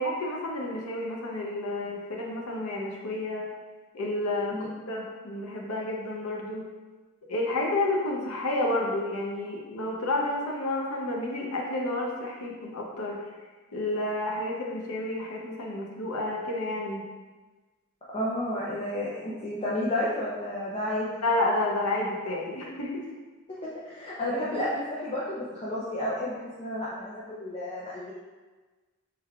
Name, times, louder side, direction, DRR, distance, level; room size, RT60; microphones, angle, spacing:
voice 1, 0.0-3.5 3.9-6.7 7.3-13.2 13.7-17.0 21.2-23.1, left 1 dB, 90° left, -1 dB, 0.6 m, -30 dB
voice 2, 18.1-21.2 23.6-28.1, left 1 dB, 25° left, -7 dB, 0.4 m, -31 dB
3.4 x 3.3 x 2.3 m, 1.3 s
head